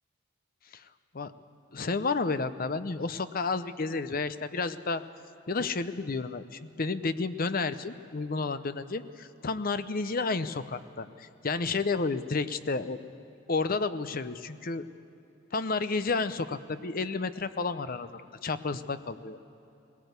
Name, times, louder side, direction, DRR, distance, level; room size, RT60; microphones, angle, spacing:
voice 1, 1.7-5.0 5.5-13.0 13.5-14.9 15.5-19.4, left 4 dB, 45° left, 12 dB, 0.7 m, -31 dB
20.0 x 18.0 x 8.1 m, 2.9 s
head